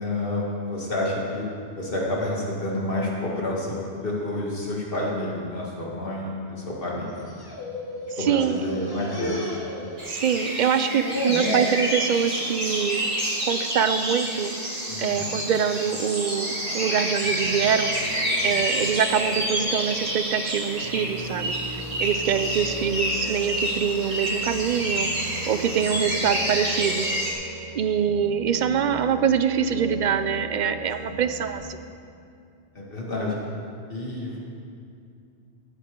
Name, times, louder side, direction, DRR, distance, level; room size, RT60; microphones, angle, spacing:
voice 1, 0.0-1.5 1.8-7.2 8.2-9.5 14.9-15.3 18.4-18.6 25.7-26.0 31.0-31.2 32.7-33.4 33.9-34.4, left 1 dB, 55° left, -3 dB, 2.1 m, -29 dB
sound 1, 7.1-8.2 8.5-10.3 10.6-11.8 12.3-12.6 13.0-13.1 14.0-14.4 14.9-15.3 16.1-18.3, left 1 dB, 20° left, 1.5 m, -34 dB
voice 2, 8.3-8.6 10.1-13.0 13.4-14.5 15.0-17.9 18.4-25.1 25.5-27.2 27.7-31.8, right 8 dB, 60° right, 11 dB, 0.5 m, -24 dB
sound 2, 10.0-27.3, equal, 35° right, 1.9 m, -28 dB
Piano, 17.2-31.6, right 1 dB, 80° left, 3.5 m, -40 dB
16.0 x 8.3 x 3.7 m, 2.4 s
omnidirectional pair, 1.1 m